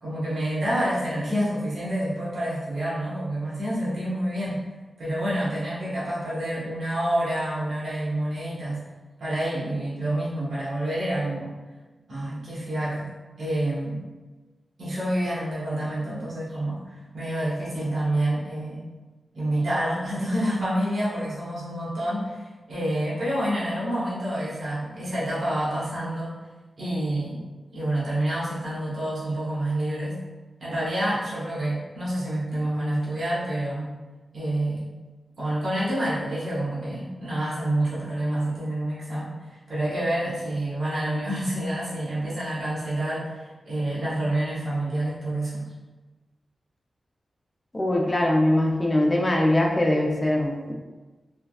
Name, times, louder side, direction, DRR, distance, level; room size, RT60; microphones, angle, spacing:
voice 1, 0.0-4.6 5.0-8.8 9.2-11.5 12.1-13.1 13.4-14.0 14.8-16.8 17.1-18.9 19.3-26.3 26.8-27.4 27.7-30.2 30.6-33.9 34.3-34.9 35.4-43.3 43.6-45.7, right 1 dB, 75° right, -9 dB, 1.0 m, -28 dB
voice 2, 47.7-50.7, left 1 dB, 25° left, 0 dB, 0.5 m, -22 dB
3.4 x 2.3 x 2.3 m, 1.2 s
cardioid pair, 70°, 0 cm